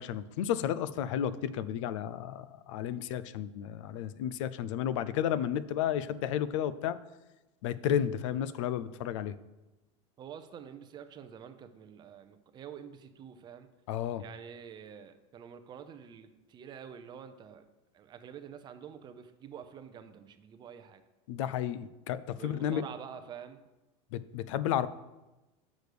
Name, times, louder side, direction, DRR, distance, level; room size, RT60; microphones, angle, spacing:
voice 1, 0.0-7.0 7.6-9.3 13.9-14.2 21.3-22.8 24.1-24.9, left 10 dB, 80° left, 15 dB, 0.5 m, -32 dB
voice 2, 10.2-13.7 14.2-17.7 17.9-21.0 22.4-23.6, right 8 dB, 30° right, 9 dB, 0.6 m, -47 dB
6.2 x 5.1 x 6.7 m, 1.0 s
supercardioid pair, 145°, 16 cm